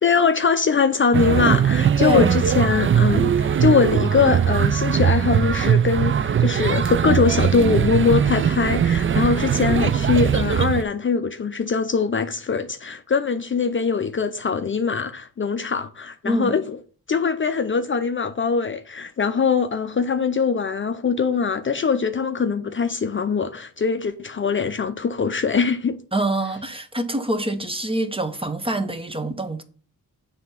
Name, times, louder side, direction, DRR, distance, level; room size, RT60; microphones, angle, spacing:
voice 1, 0.0-16.8 17.1-26.0, left 5 dB, 35° left, 0.5 m, -22 dB
sound 1, 1.1-10.8, right 8 dB, 40° right, 0.4 m, -20 dB
voice 2, 2.0-2.3 16.2-16.6 26.1-29.6, right 1 dB, 15° right, 0.8 m, -25 dB
7.2 x 3.5 x 5.7 m
cardioid pair, 80°, 34 cm